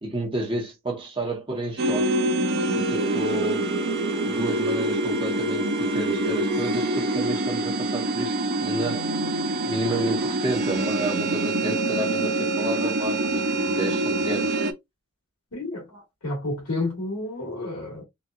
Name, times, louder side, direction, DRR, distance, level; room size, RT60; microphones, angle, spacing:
voice 1, 0.0-2.1 2.7-3.7 4.3-9.1 9.6-14.5, right 1 dB, 25° right, 1.1 m, -31 dB
sound 1, 1.8-14.7, right 2 dB, 45° right, 0.6 m, -25 dB
voice 2, 15.5-18.0, left 2 dB, 80° left, 2.0 m, -31 dB
4.0 x 2.5 x 2.4 m
head